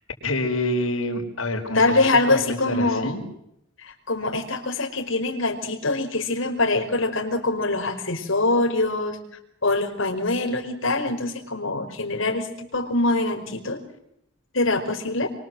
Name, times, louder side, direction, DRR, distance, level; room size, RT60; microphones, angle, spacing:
voice 1, 0.2-3.2, left 1 dB, 85° left, 3 dB, 5.1 m, -27 dB
voice 2, 1.7-3.2 3.8-9.2 9.6-13.8 14.5-15.3, left 2 dB, 65° left, 3 dB, 5.2 m, -24 dB
28.5 x 24.0 x 7.8 m, 0.80 s
head